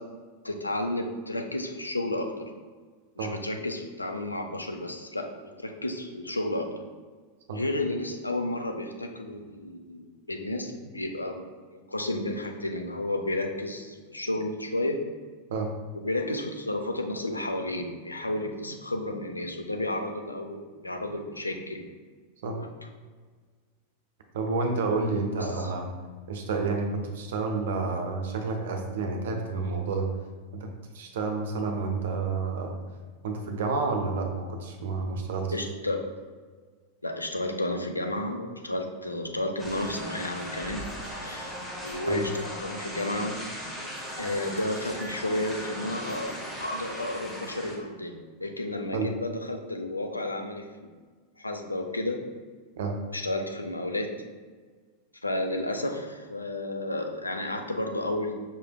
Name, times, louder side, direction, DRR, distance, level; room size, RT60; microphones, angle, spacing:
voice 1, 0.4-2.5 3.2-6.7 7.5-15.0 16.0-21.9 22.4-22.7 25.1-25.7 35.5-36.1 37.0-40.8 41.1-41.6 41.8-43.4 44.2-46.3 46.6-50.9 51.4-52.2 53.1-54.1 55.2-58.3, left 1 dB, 80° left, 3 dB, 0.4 m, -32 dB
voice 2, 24.3-25.9 26.3-30.1 30.5-30.7 30.9-32.8 33.2-35.5 42.1-42.2 48.9-49.1 52.8-53.0, right 4 dB, 60° right, 3 dB, 0.6 m, -29 dB
sound 1, 39.6-47.7, equal, 10° left, 1.0 m, -38 dB
5.4 x 3.2 x 2.2 m, 1.5 s
figure-of-eight pair, 90°, 0 cm